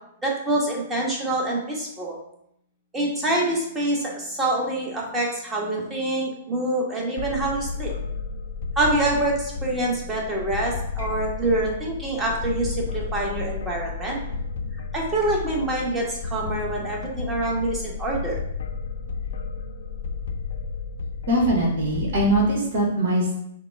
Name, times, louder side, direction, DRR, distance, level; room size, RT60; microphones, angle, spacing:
voice 1, 0.2-2.2 2.9-7.9 8.7-14.2 14.9-18.4, right 2 dB, 15° right, -3 dB, 1.4 m, -26 dB
sound 1, 7.2-22.4, left 5 dB, 65° left, 0.4 m, -32 dB
voice 2, 21.3-23.3, right 1 dB, 55° right, -1 dB, 1.4 m, -21 dB
5.7 x 2.2 x 3.4 m, 0.75 s
figure-of-eight pair, 110°, 0 cm